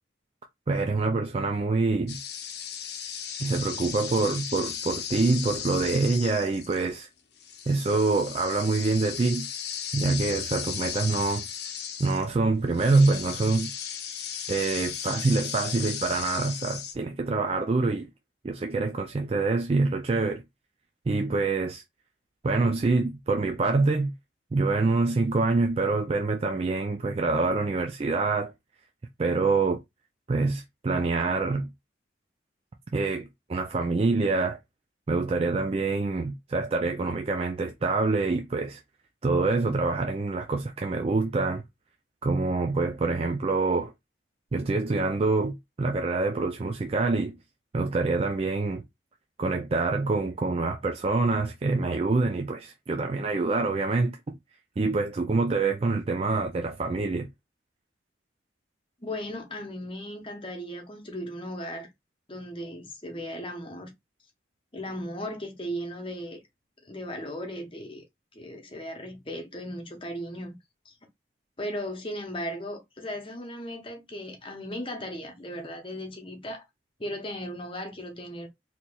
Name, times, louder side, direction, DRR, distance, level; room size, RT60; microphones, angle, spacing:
voice 1, 0.7-2.2 3.4-7.1 7.7-9.5 9.9-11.5 12.0-13.7 14.5-18.1 18.4-20.4 21.1-21.8 22.4-24.1 24.5-28.5 29.2-29.8 30.3-31.7 32.9-34.6 35.1-38.8 39.2-41.6 42.2-43.9 44.5-47.4 47.7-48.8 49.4-54.4 54.8-57.3, right 3 dB, 30° right, 0.3 m, -26 dB
sound 1, 2.1-7.1 7.4-12.3 12.7-16.9, left 8 dB, 55° left, 0.7 m, -36 dB
voice 2, 59.0-61.9 62.3-63.9 64.7-66.4 66.8-68.0 68.3-70.6 70.8-70.9 71.6-76.6 77.0-78.5, equal, 25° left, 0.9 m, -36 dB
4.1 x 2.9 x 2.3 m
head